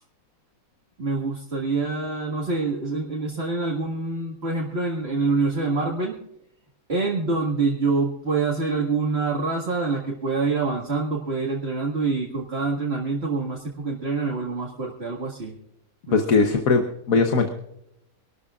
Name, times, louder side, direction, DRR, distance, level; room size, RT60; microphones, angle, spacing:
voice 1, 1.0-6.1 6.9-15.5 16.1-16.6, right 3 dB, 45° right, -2 dB, 2.1 m, -26 dB
voice 2, 16.1-17.5, left 4 dB, 70° left, 5 dB, 1.5 m, -20 dB
26.0 x 13.0 x 2.4 m, 0.80 s
omnidirectional pair, 1.6 m